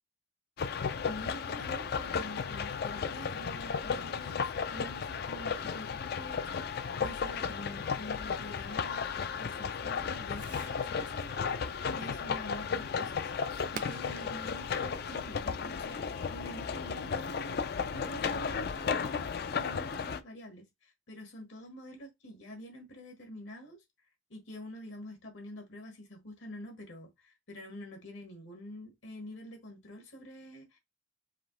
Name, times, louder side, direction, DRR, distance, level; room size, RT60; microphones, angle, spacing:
sound 1, 0.6-20.2, left 6 dB, 50° left, 0.4 m, -34 dB
voice 1, 1.1-9.1 9.4-11.4 11.9-13.3 13.7-19.2 19.5-23.8 24.3-30.8, equal, 70° left, 1.3 m, -47 dB
Fireworks, 1.7-16.3, right 5 dB, 45° right, 0.5 m, -56 dB
5.0 x 2.8 x 3.0 m
head